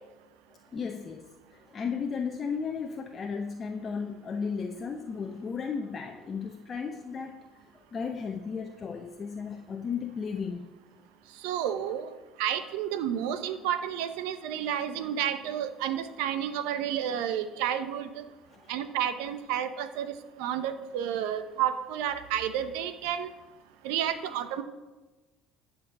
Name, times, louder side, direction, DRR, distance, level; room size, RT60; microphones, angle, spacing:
voice 1, 0.5-10.7 18.5-18.7, left 5 dB, 35° left, 3 dB, 0.8 m, -35 dB
voice 2, 11.4-12.0 12.4-18.1 18.7-20.1 20.4-23.3 23.8-24.6, right 10 dB, 80° right, 11 dB, 0.8 m, -31 dB
13.0 x 5.1 x 7.4 m, 1.2 s
supercardioid pair, 95°, 0 cm